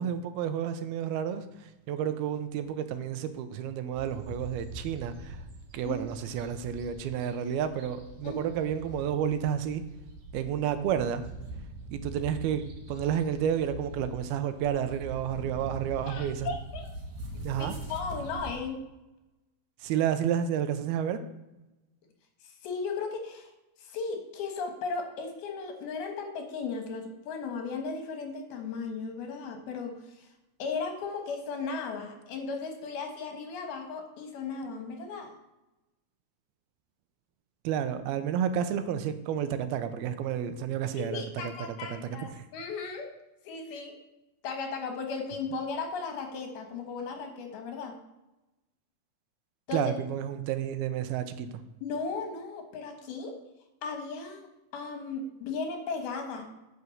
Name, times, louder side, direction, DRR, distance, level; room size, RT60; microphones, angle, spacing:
voice 1, 0.0-5.4 5.7-9.8 10.3-11.2 11.9-12.6 12.9-16.5 17.4-17.7 19.8-21.2 37.6-41.2 41.9-42.0 42.4-42.5 49.7-51.6, right 9 dB, 85° right, 10 dB, 2.6 m, -30 dB
sound 1, 3.9-18.5, right 1 dB, 60° right, 2.4 m, -43 dB
voice 2, 16.1-16.9 17.6-18.8 22.4-23.5 23.8-30.3 30.6-35.3 40.9-43.1 43.4-44.0 44.4-48.0 49.7-49.9 51.8-53.4 53.8-54.5 54.7-56.5, left 4 dB, 80° left, 4 dB, 3.3 m, -36 dB
9.6 x 6.1 x 6.6 m, 0.98 s
omnidirectional pair, 4.4 m